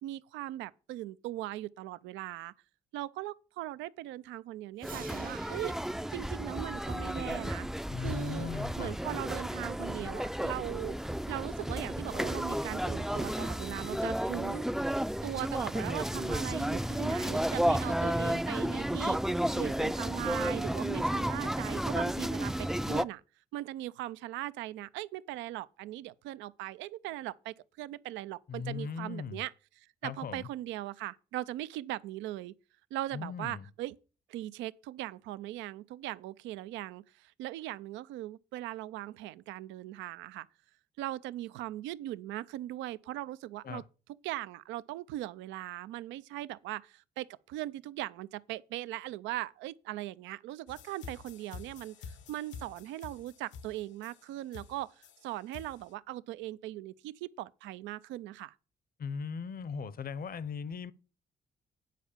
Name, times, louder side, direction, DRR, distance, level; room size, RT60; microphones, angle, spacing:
voice 1, 0.0-2.5 2.9-5.8 6.1-7.7 8.0-8.5 8.8-11.0 11.3-14.6 15.2-23.2 23.5-29.5 30.0-32.5 32.9-34.0 34.3-40.5 41.0-43.8 44.2-58.5, right 15 dB, 85° right, 0.5 m, -39 dB
sound 1, 4.8-23.0, equal, ahead, 0.4 m, -32 dB
sound 2, 4.8-10.8, right 6 dB, 50° right, 1.1 m, -54 dB
voice 2, 7.9-9.0 28.5-29.4 30.0-30.5 33.1-33.7 43.6-43.8 59.0-60.9, left 6 dB, 55° left, 0.8 m, -38 dB
sound 3, 50.7-55.9, left 6 dB, 80° left, 1.0 m, -49 dB
9.2 x 4.7 x 7.1 m
supercardioid pair, 50°, 19 cm